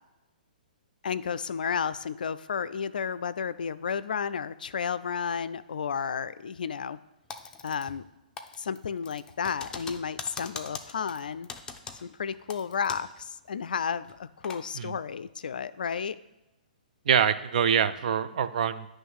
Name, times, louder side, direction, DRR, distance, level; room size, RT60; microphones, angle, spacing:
voice 1, 1.0-7.0 7.6-8.1 8.6-11.5 12.0-16.2, left 6 dB, 70° left, 15 dB, 0.4 m, -32 dB
Typing, 7.3-8.1 8.4-13.2 13.5-13.6 14.0-14.6, left 5 dB, 15° left, 0.6 m, -42 dB
voice 2, 17.1-18.9, right 8 dB, 55° right, 12 dB, 0.5 m, -25 dB
9.2 x 3.2 x 6.2 m, 1.0 s
figure-of-eight pair, 125°, 5 cm